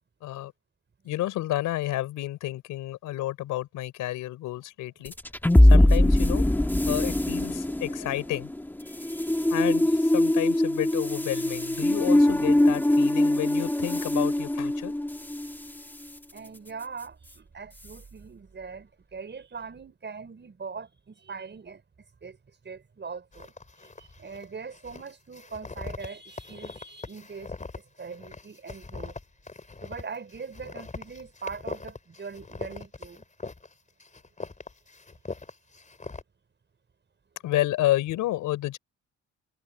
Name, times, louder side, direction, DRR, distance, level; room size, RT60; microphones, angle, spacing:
voice 1, 0.2-0.5 1.0-5.1 5.7-6.5 6.8-8.5 9.5-14.9 37.4-38.8, left 15 dB, 90° left, 4.6 m, -30 dB
sound 1, 5.1-15.6, left 1 dB, 5° left, 1.7 m, -22 dB
voice 2, 8.9-9.5 16.3-21.8 22.2-22.4 22.6-23.5 23.8-27.5 28.0-29.1 29.8-33.2, right 5 dB, 35° right, 5.9 m, -41 dB
sound 2, 23.3-24.4 24.7-33.7 34.0-36.2, left 3 dB, 25° left, 4.6 m, -41 dB
cardioid pair, 90°, 30 cm